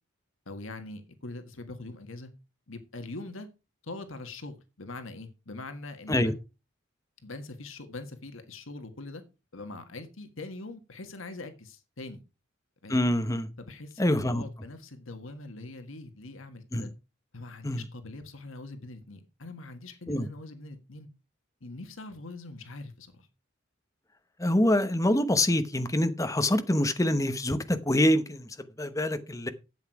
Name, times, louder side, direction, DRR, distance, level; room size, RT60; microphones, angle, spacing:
voice 1, 0.5-2.3 2.7-3.5 3.8-6.4 7.2-9.2 9.5-12.2 12.8-13.1 13.6-16.9 17.3-21.1 21.6-23.3, left 2 dB, 80° left, 1.6 m, -42 dB
voice 2, 12.9-13.5 14.0-14.4 16.7-16.9 17.6-17.8 20.1-20.3 24.4-29.5, left 1 dB, 15° left, 0.9 m, -25 dB
12.0 x 8.1 x 4.7 m
head